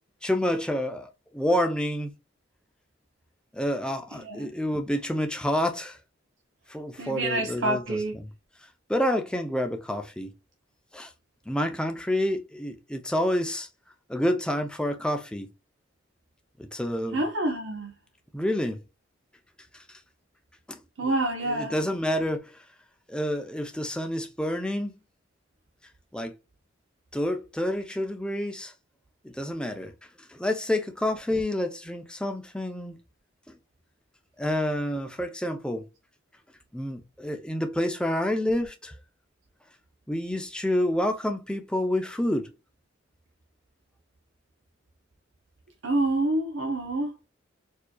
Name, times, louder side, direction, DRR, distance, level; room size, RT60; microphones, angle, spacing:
voice 1, 0.2-2.1 3.5-6.0 6.7-8.3 8.9-10.3 10.9-11.1 11.5-13.7 14.1-15.5 16.6-17.2 18.3-18.8 19.7-19.8 20.7-21.1 21.4-22.6 23.1-24.9 26.1-26.4 27.1-28.7 29.2-29.9 30.2-33.0 33.5-33.6 34.4-35.9 36.7-38.9 40.1-42.5, left 1 dB, 5° left, 0.5 m, -28 dB
voice 2, 4.1-4.5 7.0-8.1 17.1-17.9 21.0-21.8 45.8-47.3, right 2 dB, 70° right, 0.7 m, -27 dB
4.5 x 2.7 x 2.2 m
head